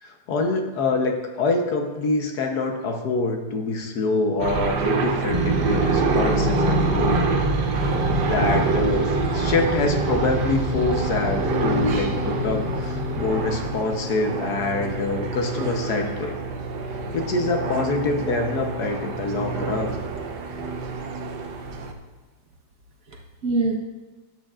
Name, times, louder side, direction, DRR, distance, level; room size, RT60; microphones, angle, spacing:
voice 1, 0.0-7.2 8.2-16.4 17.1-20.0, left 3 dB, 65° left, 3 dB, 1.5 m, -25 dB
sound 1, 4.4-21.9, right 4 dB, 80° right, 1.4 m, -27 dB
sound 2, 5.3-13.8, right 1 dB, 30° right, 2.2 m, -27 dB
voice 2, 7.7-8.6 9.4-9.5 11.8-12.1 13.1-13.2 16.2-16.3 23.1-23.8, right 3 dB, 55° right, -1 dB, 1.6 m, -29 dB
12.5 x 8.9 x 2.4 m, 1.3 s
omnidirectional pair, 1.9 m